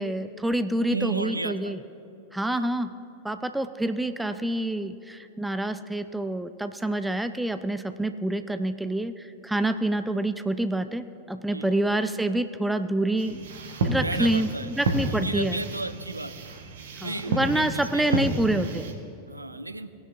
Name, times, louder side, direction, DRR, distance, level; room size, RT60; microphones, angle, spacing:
voice 1, 0.0-1.8 2.3-2.9 3.2-13.4 13.8-14.5 14.8-15.6 17.0-18.9, right 1 dB, 5° right, 10 dB, 0.4 m, -27 dB
voice 2, 0.9-1.8 2.5-2.7 11.5-11.9 14.0-14.7 15.1-16.3 17.0-18.4 19.3-19.9, right 2 dB, 85° right, 12 dB, 0.4 m, -34 dB
sound 1, 13.2-18.9, right 2 dB, 60° right, 1.1 m, -31 dB
18.0 x 10.5 x 2.5 m, 2.5 s
figure-of-eight pair, 90°, 0 cm